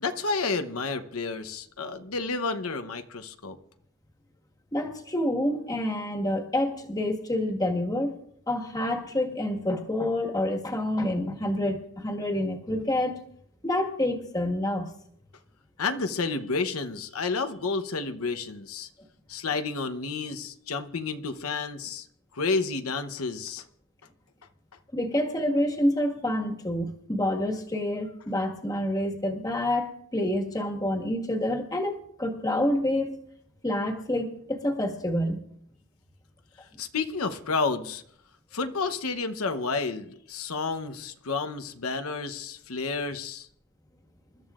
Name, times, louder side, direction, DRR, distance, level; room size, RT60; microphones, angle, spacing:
voice 1, 0.0-3.6 15.8-18.9 19.3-22.1 22.3-23.6 36.8-38.0 38.5-43.5, left 4 dB, 85° left, 8 dB, 0.9 m, -30 dB
voice 2, 4.7-8.2 8.5-13.2 13.6-14.9 24.9-33.1 33.6-35.4, left 1 dB, 20° left, 1 dB, 1.7 m, -28 dB
28.0 x 13.5 x 2.5 m, 0.69 s
head